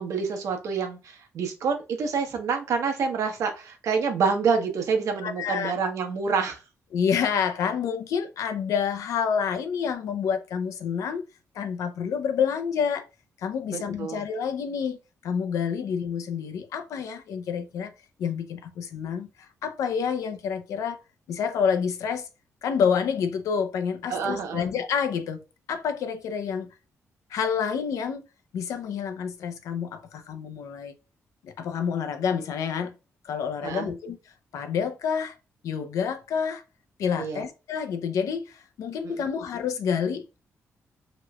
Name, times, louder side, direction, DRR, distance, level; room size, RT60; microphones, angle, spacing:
voice 1, 0.0-6.6 13.7-14.2 24.1-24.7 33.6-33.9 37.2-37.5 39.0-39.2, right 5 dB, 80° right, 0.9 m, -27 dB
voice 2, 5.2-5.9 6.9-11.2 11.5-13.1 13.4-15.0 15.2-17.9 18.2-21.0 21.3-22.3 22.6-25.4 25.7-26.7 27.3-28.2 28.5-30.9 31.4-32.9 33.2-34.2 34.5-35.3 35.6-36.6 37.0-40.2, left 7 dB, 90° left, 0.5 m, -28 dB
3.0 x 3.0 x 2.3 m
cardioid pair, 120°, 5 cm